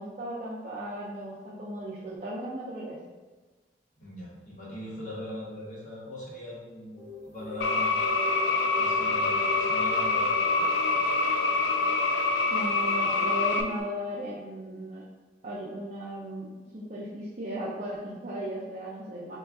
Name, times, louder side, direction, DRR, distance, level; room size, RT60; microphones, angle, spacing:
voice 1, 0.0-3.0 12.5-15.0 15.4-19.4, equal, 40° right, -7 dB, 0.5 m, -36 dB
voice 2, 4.0-8.1 8.8-10.8, left 1 dB, 45° left, -7 dB, 1.1 m, -40 dB
sound 1, 7.0-13.8, left 1 dB, 5° left, 1.0 m, -42 dB
sound 2, 7.6-13.6, left 3 dB, 70° left, 0.4 m, -25 dB
3.6 x 2.3 x 3.5 m, 1.3 s
head